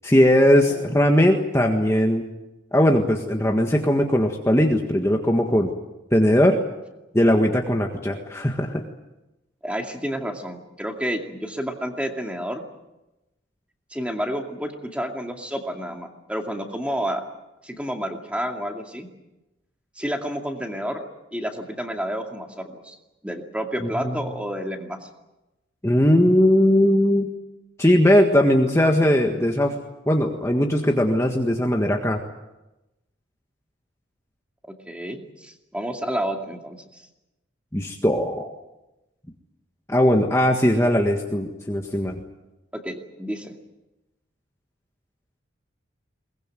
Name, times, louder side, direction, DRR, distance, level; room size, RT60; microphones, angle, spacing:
voice 1, 0.0-2.2 2.7-5.7 6.1-6.6 7.1-8.8 23.8-24.1 25.8-27.3 27.8-29.7 30.1-32.2 37.7-38.5 39.9-42.2, equal, 15° left, 2 dB, 1.6 m, -19 dB
voice 2, 9.6-12.6 13.9-17.2 17.6-19.1 20.0-21.1 21.3-23.0 23.2-25.0 34.9-37.0 42.7-43.5, equal, 5° right, 3 dB, 2.3 m, -30 dB
22.5 x 20.5 x 9.2 m, 0.98 s
head